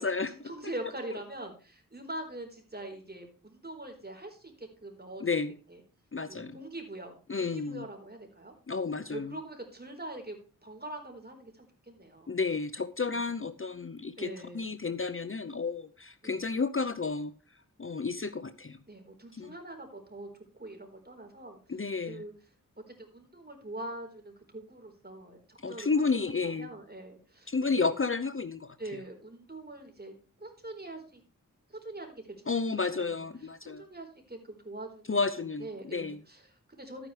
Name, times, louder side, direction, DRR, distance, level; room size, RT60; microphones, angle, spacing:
voice 1, 0.4-5.2 5.7-5.8 6.3-8.5 9.1-12.4 13.1-13.3 14.2-14.7 16.2-16.5 18.9-20.3 20.5-21.6 22.0-22.3 22.9-27.9 28.8-31.2 31.7-32.6 32.9-33.1 33.8-35.2 35.6-37.1, right 1 dB, 30° right, 3 dB, 4.3 m, -43 dB
voice 2, 5.2-5.5 6.1-6.5 7.3-7.8 8.7-9.4 12.3-17.3 17.8-18.8 19.3-19.5 21.7-22.2 25.6-26.7 27.5-28.8 32.5-33.9 35.1-36.2, left 4 dB, 40° left, 13 dB, 0.7 m, -31 dB
13.0 x 9.8 x 3.3 m, 0.36 s
wide cardioid pair, 50°, 33 cm